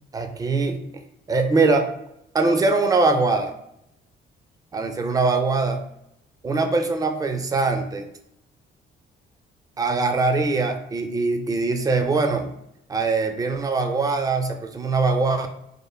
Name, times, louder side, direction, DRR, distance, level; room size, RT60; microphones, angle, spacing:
voice 1, 0.1-1.0 1.3-1.9 2.3-3.5 4.7-5.8 6.4-8.1 9.8-12.5 12.9-15.5, right 3 dB, 20° right, 6 dB, 0.4 m, -22 dB
3.2 x 2.4 x 2.3 m, 0.80 s
cardioid pair, 90°, 20 cm